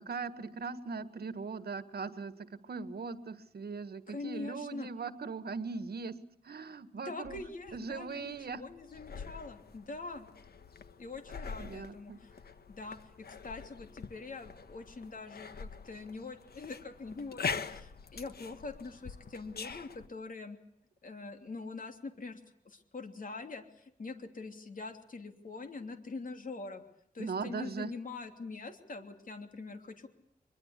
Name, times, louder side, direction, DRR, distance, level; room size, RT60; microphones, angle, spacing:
voice 1, 0.0-6.2 6.4-7.4 7.7-8.6 11.6-12.2 27.2-27.9, right 4 dB, 75° right, 12 dB, 1.7 m, -39 dB
voice 2, 4.1-4.9 7.0-10.3 11.0-12.1 12.7-20.6 21.0-26.8 27.1-30.1, left 3 dB, 55° left, 6 dB, 3.0 m, -44 dB
sound 1, 7.2-20.1, left 5 dB, 75° left, 1.5 m, -44 dB
24.0 x 23.0 x 8.4 m, 0.72 s
wide cardioid pair, 105°, 16 cm